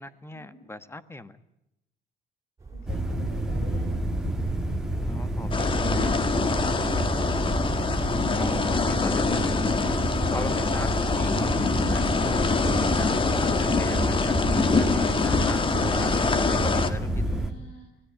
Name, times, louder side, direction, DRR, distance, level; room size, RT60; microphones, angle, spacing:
voice 1, 0.0-1.4 5.1-6.2 8.3-9.8 10.3-12.0 12.6-13.1 13.4-14.2 14.5-17.4, left 2 dB, 15° left, 14 dB, 1.4 m, -39 dB
sound 1, 2.6-8.1, right 3 dB, 20° right, 6.8 m, -39 dB
voice 2, 2.7-3.9 4.6-7.3 17.0-18.0, left 2 dB, 60° left, 4 dB, 5.0 m, -49 dB
sound 2, 2.9-17.5, right 1 dB, 5° right, 2.9 m, -28 dB
sound 3, 5.5-16.9, left 4 dB, 30° left, 1.9 m, -25 dB
25.0 x 17.0 x 9.3 m, 0.86 s
cardioid pair, 110°, 17 cm